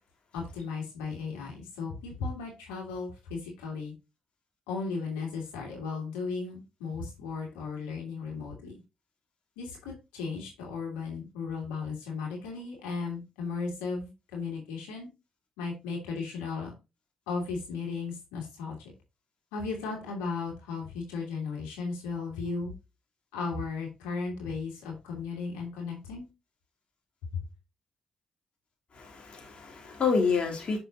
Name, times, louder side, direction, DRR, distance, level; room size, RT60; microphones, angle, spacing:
voice 1, 0.3-3.9 4.7-8.7 9.6-15.1 15.6-16.7 17.3-18.8 19.5-22.7 23.3-26.3 27.3-27.4, left 4 dB, 85° left, 2.8 m, -35 dB
voice 2, 28.9-30.8, left 5 dB, 50° left, 2.8 m, -28 dB
6.8 x 6.5 x 2.6 m
hypercardioid pair, 45°, 2 cm